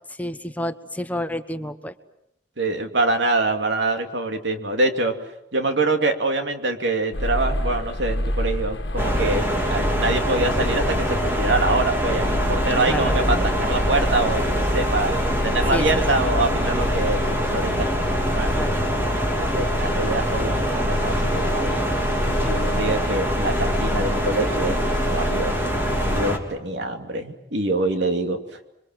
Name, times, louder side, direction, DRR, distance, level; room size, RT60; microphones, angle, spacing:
voice 1, 0.2-1.9 12.9-13.2 15.7-16.0 18.6-18.8, equal, 10° left, 9 dB, 1.1 m, -29 dB
voice 2, 2.6-5.1 5.5-18.5 19.4-21.9 22.4-24.8 25.1-25.6 26.1-28.4, right 2 dB, 85° right, 5 dB, 2.9 m, -25 dB
sound 1, 7.1-26.2, left 1 dB, 80° left, 1.6 m, -28 dB
sound 2, 9.0-26.4, equal, 15° right, 3.2 m, -24 dB
28.0 x 24.0 x 7.8 m, 0.84 s
head